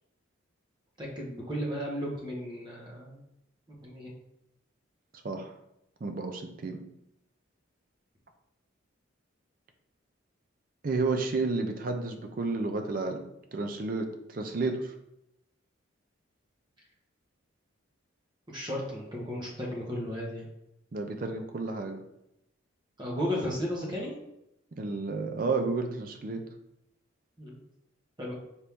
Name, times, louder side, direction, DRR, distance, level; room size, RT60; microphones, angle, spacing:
voice 1, 1.0-3.2 3.8-4.1 18.5-20.5 23.0-24.1 27.4-27.6 28.2-28.3, equal, 20° right, -3 dB, 0.8 m, -34 dB
voice 2, 6.0-6.8 10.8-14.9 20.9-22.0 24.8-26.5, right 3 dB, 45° right, 5 dB, 0.4 m, -31 dB
4.4 x 2.6 x 3.4 m, 0.84 s
head